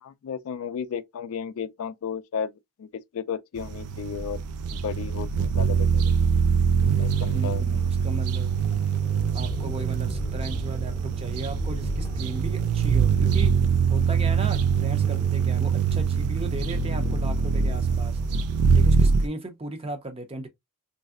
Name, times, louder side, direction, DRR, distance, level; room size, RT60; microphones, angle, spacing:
voice 1, 0.0-2.5 2.8-2.9 3.1-4.4 4.7-6.1 7.0-7.9, left 7 dB, 70° left, 0.3 m, -33 dB
sound 1, 3.6-19.3, right 6 dB, 90° right, 0.4 m, -24 dB
sound 2, 6.8-18.4, left 1 dB, 20° left, 0.6 m, -37 dB
voice 2, 7.3-8.5 9.3-13.6 13.9-18.2 18.7-20.5, right 2 dB, 25° right, 0.5 m, -36 dB
3.2 x 2.6 x 2.3 m
head